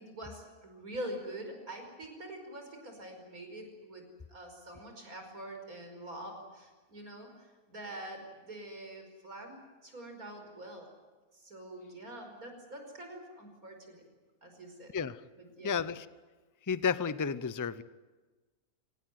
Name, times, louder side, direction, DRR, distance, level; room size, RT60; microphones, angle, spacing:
voice 1, 0.0-10.9 11.3-14.0 14.4-14.9 15.4-15.8, right 1 dB, 80° right, 4 dB, 5.6 m, -45 dB
voice 2, 15.6-16.0 16.7-17.8, left 6 dB, 25° left, 15 dB, 0.4 m, -31 dB
25.0 x 19.0 x 9.3 m, 1.3 s
omnidirectional pair, 1.5 m